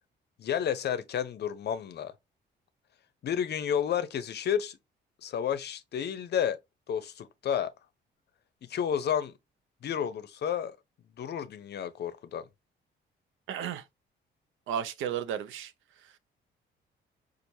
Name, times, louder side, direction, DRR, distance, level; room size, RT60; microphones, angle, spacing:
voice 1, 0.4-2.1 3.2-4.8 5.2-6.6 6.9-7.7 8.6-9.3 9.8-10.8 11.2-12.5, left 9 dB, 55° left, 0.6 m, -31 dB
voice 2, 13.5-13.8 14.7-15.7, right 9 dB, 85° right, 0.5 m, -33 dB
4.4 x 2.5 x 2.6 m
cardioid pair, 90°, 20 cm